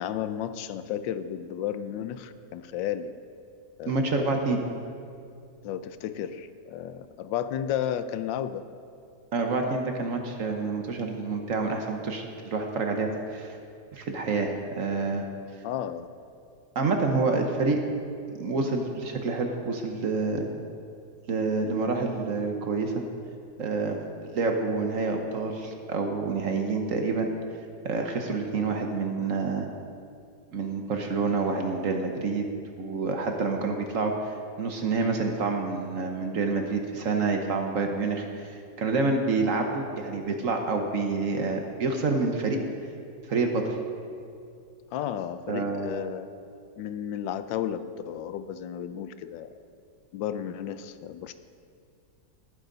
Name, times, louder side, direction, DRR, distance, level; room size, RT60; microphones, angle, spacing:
voice 1, 0.0-3.1 3.8-4.4 5.6-8.6 15.6-16.1 44.9-46.3 46.8-49.5 50.1-51.3, left 10 dB, 85° left, 12 dB, 1.3 m, -33 dB
voice 2, 3.9-4.6 9.3-13.6 13.9-15.2 16.7-17.8 18.3-20.5 21.3-23.0 23.6-24.0 24.3-27.3 27.8-29.7 30.5-32.5 32.8-42.6 43.3-43.7 45.5-45.9, right 3 dB, 50° right, 3 dB, 1.3 m, -28 dB
18.5 x 9.7 x 4.0 m, 2.4 s
omnidirectional pair, 2.0 m